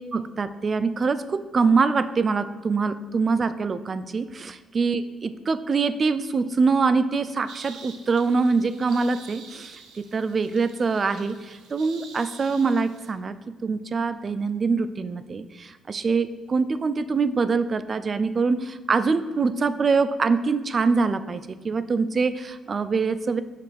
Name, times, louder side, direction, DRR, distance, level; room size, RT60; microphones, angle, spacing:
voice 1, 0.1-9.7 10.1-23.4, right 4 dB, 40° right, 13 dB, 0.4 m, -24 dB
sound 1, 7.5-13.1, right 5 dB, 90° right, 0.8 m, -47 dB
5.8 x 4.9 x 5.9 m, 1.3 s
cardioid pair, 90°, 0 cm